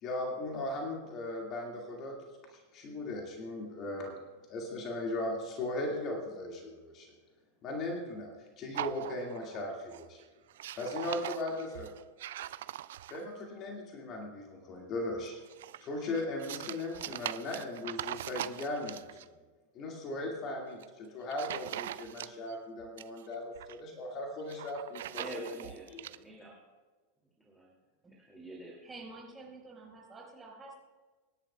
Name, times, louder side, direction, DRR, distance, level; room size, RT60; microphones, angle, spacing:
voice 1, 0.0-2.2 2.5-4.2 4.5-7.1 7.6-10.2 10.8-11.9 13.1-15.4 15.8-19.2 19.7-26.1, left 2 dB, 35° left, 0 dB, 2.1 m, -38 dB
sound 1, 8.7-9.6 9.9-10.2 10.5-13.4 15.2-19.3 20.6-20.9 21.3-22.6 22.8-23.8 24.4-26.2, right 13 dB, 55° right, 0.3 m, -41 dB
voice 2, 25.1-25.9 26.1-26.6 27.4-27.7 28.1-28.9, right 1 dB, 5° left, -2 dB, 2.5 m, -47 dB
voice 3, 28.8-30.7, right 3 dB, 15° right, -3 dB, 5.0 m, -49 dB
26.5 x 10.5 x 2.3 m, 1.3 s
figure-of-eight pair, 90°, 0 cm